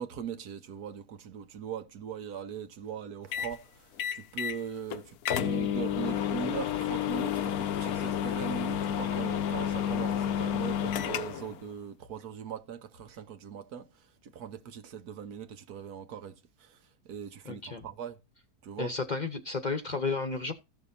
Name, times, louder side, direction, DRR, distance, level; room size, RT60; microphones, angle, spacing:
voice 1, 0.0-16.8 17.0-18.2 18.6-18.9, right 8 dB, 80° right, 1.5 m, -40 dB
sound 1, 3.3-3.6 4.0-4.6 4.9-5.0 5.2-11.5, left 10 dB, 75° left, 1.1 m, -30 dB
voice 2, 17.4-17.8 18.8-20.5, left 4 dB, 35° left, 0.8 m, -32 dB
15.0 x 6.0 x 2.7 m
omnidirectional pair, 1.6 m